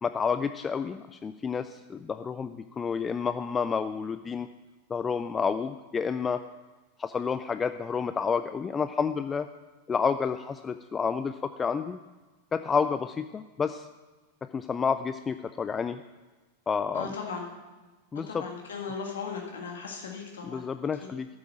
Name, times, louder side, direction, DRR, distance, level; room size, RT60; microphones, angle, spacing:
voice 1, 0.0-4.5 4.9-6.4 7.0-9.5 9.9-12.0 12.5-13.9 14.5-16.0 16.7-17.2 18.1-18.5 20.4-21.3, left 6 dB, 20° left, 11 dB, 0.4 m, -30 dB
voice 2, 16.9-17.5 18.3-20.6, left 5 dB, 65° left, 1 dB, 1.8 m, -37 dB
8.9 x 8.4 x 7.5 m, 1.3 s
figure-of-eight pair, 90°, 0 cm